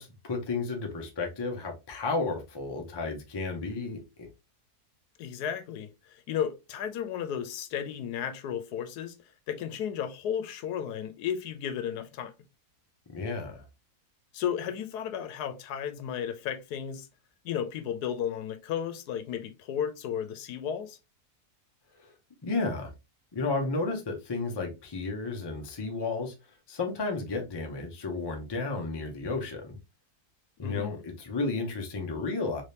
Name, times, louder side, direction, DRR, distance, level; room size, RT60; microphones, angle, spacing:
voice 1, 0.0-4.3 13.1-13.6 22.0-22.1 22.4-22.9 23.3-26.3 26.7-29.8 30.6-32.6, left 3 dB, 30° left, 0.4 m, -32 dB
voice 2, 5.2-9.2 9.5-12.3 14.3-17.1 17.4-21.0 30.6-31.0, left 9 dB, 85° left, 1.2 m, -34 dB
3.4 x 3.1 x 2.7 m
omnidirectional pair, 1.7 m